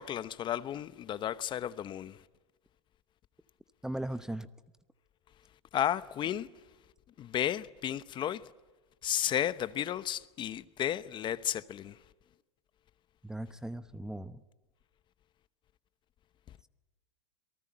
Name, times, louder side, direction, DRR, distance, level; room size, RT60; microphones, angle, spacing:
voice 1, 0.0-2.2 5.7-6.5 7.2-8.5 9.0-12.0, left 11 dB, 30° left, 0.9 m, -33 dB
voice 2, 3.8-4.5 13.2-14.4, right 1 dB, 5° right, 0.8 m, -38 dB
27.0 x 19.0 x 8.8 m
hypercardioid pair, 115°, 16 cm